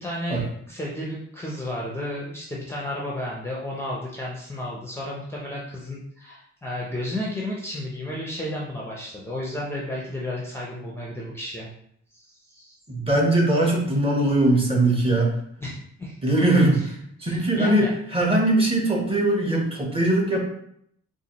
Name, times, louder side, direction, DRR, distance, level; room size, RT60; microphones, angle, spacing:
voice 1, 0.0-11.7 12.1-12.7 15.6-16.2 16.7-16.9 17.2-17.9, left 1 dB, 10° left, -5 dB, 0.5 m, -32 dB
voice 2, 12.9-15.3 16.2-17.9 18.1-20.4, right 1 dB, 20° right, -1 dB, 0.9 m, -21 dB
4.0 x 2.5 x 2.9 m, 0.71 s
cardioid pair, 130°, 29 cm